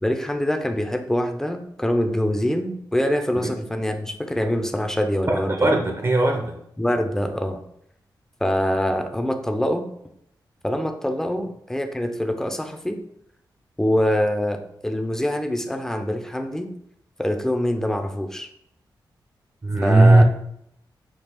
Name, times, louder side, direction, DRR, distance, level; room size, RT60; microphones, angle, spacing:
voice 1, 0.0-5.8 6.8-7.6 8.4-9.9 10.6-13.0 13.8-16.7 17.2-18.5 19.8-20.2, equal, 5° left, 6 dB, 0.6 m, -24 dB
voice 2, 5.3-6.6 19.6-20.2, right 2 dB, 35° right, 2 dB, 0.7 m, -18 dB
5.9 x 2.3 x 3.5 m, 0.75 s
cardioid pair, 60°, 8 cm